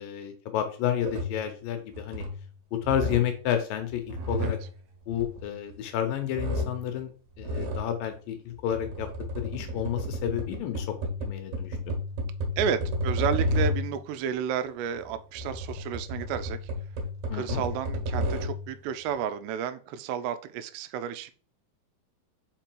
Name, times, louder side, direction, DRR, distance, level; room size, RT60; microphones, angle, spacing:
voice 1, 0.0-2.2 2.7-4.6 5.1-7.1 7.4-9.1 9.4-10.9 11.2-11.8 17.3-17.6, left 10 dB, 80° left, 7 dB, 2.1 m, -30 dB
Guitar Wood Creaking, 1.0-1.5 1.9-2.5 2.8-3.4 3.9-5.9 6.3-6.9 7.4-7.9 8.6-14.0 15.0-18.7, left 1 dB, 65° right, 2.1 m, -32 dB
voice 2, 12.6-16.6 17.3-21.3, right 8 dB, 90° right, 10 dB, 2.7 m, -32 dB
5.2 x 4.9 x 4.5 m, 0.39 s
omnidirectional pair, 4.7 m